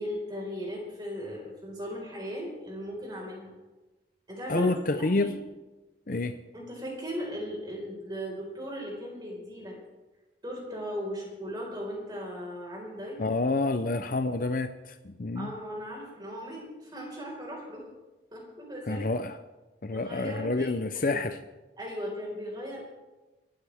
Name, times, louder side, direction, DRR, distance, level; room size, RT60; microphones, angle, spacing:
voice 1, 0.0-3.5 4.3-4.7 5.0-5.3 6.5-9.7 10.4-13.2 15.3-17.9 18.3-19.0 19.9-21.2 21.8-22.8, equal, 25° right, -2 dB, 4.8 m, -37 dB
voice 2, 4.5-5.3 6.1-6.4 13.2-15.5 18.9-19.4 19.8-21.4, left 3 dB, 50° left, 9 dB, 0.6 m, -28 dB
24.0 x 13.0 x 3.5 m, 1.1 s
head